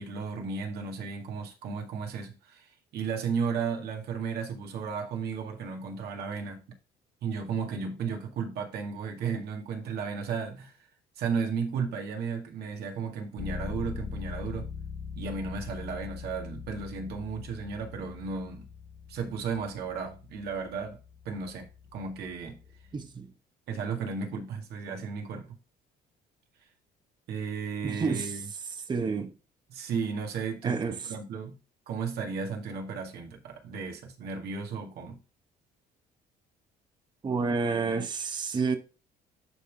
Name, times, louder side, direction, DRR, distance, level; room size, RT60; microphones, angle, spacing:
voice 1, 0.0-6.6 7.2-10.8 11.2-14.7 15.2-18.7 19.1-21.0 21.3-22.6 23.7-25.6 27.3-28.5 29.7-31.5 31.9-35.2, right 5 dB, 75° right, 1.9 m, -34 dB
Bass guitar, 13.4-23.1, left 6 dB, 30° left, 1.2 m, -42 dB
voice 2, 22.9-23.3 27.8-28.3 28.9-29.3 30.6-31.0 37.2-38.8, right 4 dB, 25° right, 0.8 m, -29 dB
11.0 x 3.7 x 3.6 m
cardioid pair, 110°, 17 cm